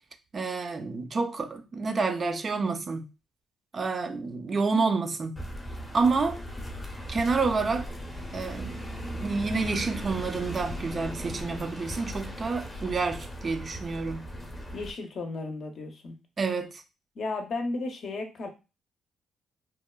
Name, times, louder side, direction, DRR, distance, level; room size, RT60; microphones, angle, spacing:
voice 1, 0.3-3.1 3.7-5.4 5.9-6.4 7.1-7.9 8.3-8.8 9.1-14.2 16.4-16.8, right 4 dB, 40° right, 0.4 m, -28 dB
sound 1, 5.4-14.9, equal, 20° left, 0.7 m, -37 dB
voice 2, 14.7-16.2 17.2-18.5, left 3 dB, 55° left, 0.6 m, -34 dB
2.9 x 2.1 x 2.2 m
cardioid pair, 90°, 0 cm